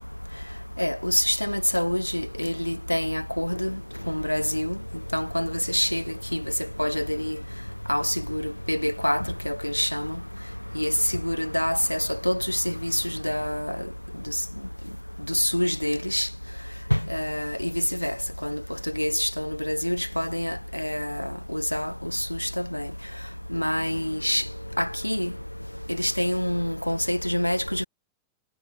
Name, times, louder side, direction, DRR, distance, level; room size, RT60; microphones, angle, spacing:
voice 1, 0.8-3.8 4.1-4.8 5.1-6.0 6.3-6.4 6.8-7.4 7.9-10.2 10.8-13.8 15.3-16.3 16.9-18.2 18.4-18.6 19.0-22.9 23.5-24.4 24.8-25.3 26.0-27.8, equal, 90° left, 3.5 m, -26 dB
figure-of-eight pair, 90°, 0 cm